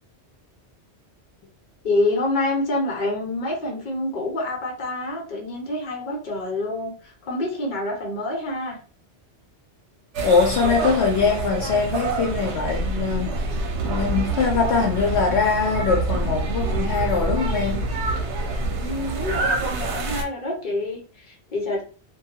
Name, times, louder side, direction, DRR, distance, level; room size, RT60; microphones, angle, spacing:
voice 1, 1.8-8.8 18.8-21.8, left 2 dB, 45° left, -2 dB, 1.0 m, -27 dB
sound 1, 10.1-20.2, right 2 dB, 85° right, 1.0 m, -26 dB
voice 2, 10.2-13.5 13.8-17.8, left 5 dB, 75° left, 1 dB, 0.9 m, -22 dB
2.7 x 2.3 x 2.8 m, 0.39 s
omnidirectional pair, 1.1 m